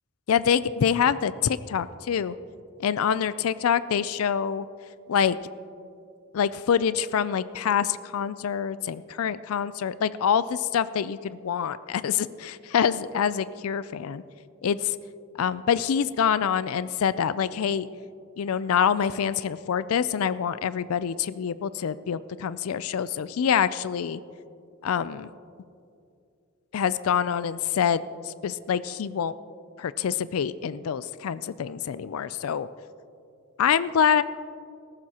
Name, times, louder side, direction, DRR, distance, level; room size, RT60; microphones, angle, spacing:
voice 1, 0.3-2.3 2.8-4.7 5.1-5.4 6.3-14.2 14.6-15.0 15.4-17.9 18.4-24.2 24.8-25.3 26.7-29.3 29.8-32.7 33.6-34.2, left 7 dB, 90° left, 16 dB, 0.4 m, -26 dB
18.5 x 14.5 x 2.9 m, 2.5 s
head